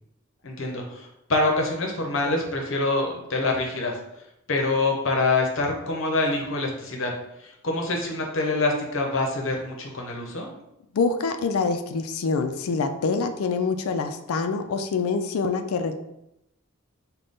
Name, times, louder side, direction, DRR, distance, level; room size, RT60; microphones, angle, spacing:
voice 1, 0.4-4.0 4.5-7.1 7.4-10.5, left 2 dB, 65° left, 1 dB, 0.7 m, -25 dB
voice 2, 10.9-16.0, left 4 dB, 85° left, 7 dB, 0.4 m, -25 dB
3.8 x 2.2 x 3.6 m, 0.84 s
head